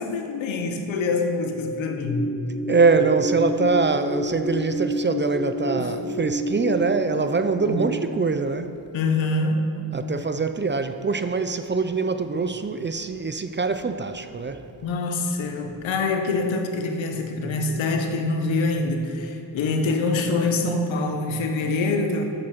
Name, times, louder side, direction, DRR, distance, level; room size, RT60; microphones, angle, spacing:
voice 1, 0.0-2.3 5.8-5.9 7.6-7.8 8.9-9.6 14.8-22.2, left 3 dB, 90° left, 1.1 m, -25 dB
sound 1, 2.0-7.9, equal, 5° left, 2.0 m, -29 dB
voice 2, 2.7-8.7 9.9-14.6, right 4 dB, 25° right, 0.5 m, -23 dB
9.5 x 7.7 x 5.9 m
cardioid pair, 70°, 45 cm